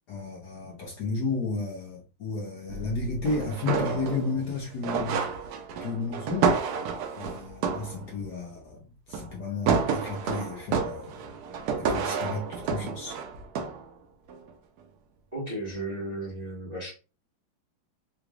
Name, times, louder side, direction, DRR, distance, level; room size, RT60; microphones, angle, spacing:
voice 1, 0.1-5.2 5.8-6.5 7.2-8.8 9.1-11.4 11.8-13.2, left 3 dB, 65° left, 1.2 m, -32 dB
sound 1, 2.7-4.6 4.8-8.2 9.1-9.4 9.7-13.9 14.3-14.5, right 5 dB, 90° right, 0.8 m, -30 dB
voice 2, 15.3-16.9, right 1 dB, 25° right, 1.1 m, -34 dB
3.8 x 3.1 x 2.3 m
omnidirectional pair, 2.3 m